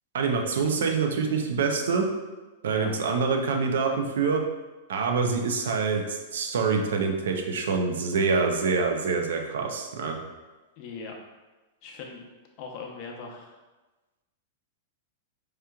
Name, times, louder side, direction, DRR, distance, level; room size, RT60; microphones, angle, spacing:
voice 1, 0.1-2.1 2.6-4.4 4.9-10.2, right 4 dB, 80° right, 3 dB, 0.5 m, -26 dB
voice 2, 2.7-3.2 10.8-11.1 11.8-12.2 12.6-13.5, left 5 dB, 45° left, 0 dB, 0.7 m, -40 dB
4.7 x 2.9 x 2.3 m, 1.2 s
hypercardioid pair, 130°, 0 cm